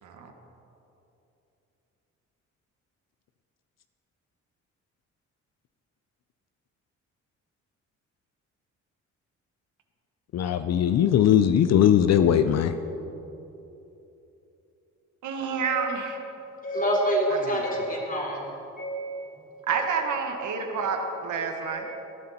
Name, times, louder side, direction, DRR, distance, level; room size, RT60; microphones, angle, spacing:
voice 1, 0.0-0.3 15.2-16.2 19.7-21.9, right 5 dB, 75° right, 4 dB, 1.6 m, -29 dB
voice 2, 10.3-12.7, left 9 dB, 60° left, 10 dB, 0.6 m, -20 dB
voice 3, 15.6-16.1 16.6-20.1 20.6-20.9 21.6-21.9, right 1 dB, 30° left, -1 dB, 3.3 m, -29 dB
18.0 x 10.5 x 4.3 m, 3.0 s
cardioid pair, 90°, 30 cm